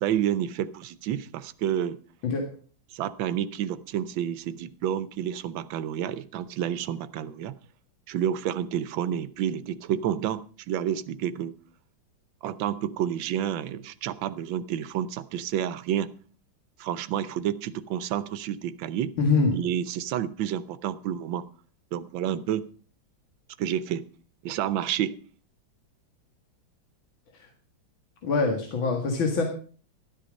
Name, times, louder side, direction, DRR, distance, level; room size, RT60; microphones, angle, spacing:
voice 1, 0.0-2.0 2.9-7.5 8.1-11.6 12.4-16.1 16.8-19.2 19.5-21.5 21.9-22.7 23.6-24.1 24.4-25.2, right 10 dB, 70° right, 1.4 m, -29 dB
voice 2, 19.2-19.5 27.3-27.5 28.2-29.4, left 4 dB, 65° left, 2.7 m, -24 dB
13.0 x 12.0 x 5.2 m
omnidirectional pair, 2.3 m